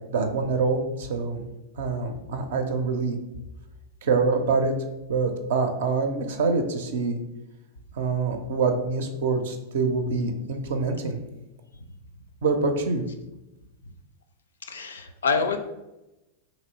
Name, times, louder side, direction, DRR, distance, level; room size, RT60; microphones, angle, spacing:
voice 1, 0.1-1.5 1.8-3.2 4.0-4.7 5.1-7.2 7.9-11.2 12.4-13.0, right 4 dB, 60° right, 6 dB, 0.5 m, -25 dB
voice 2, 14.7-15.6, left 5 dB, 70° left, 8 dB, 0.4 m, -26 dB
3.0 x 2.9 x 4.1 m, 0.97 s
figure-of-eight pair, 90°, 0 cm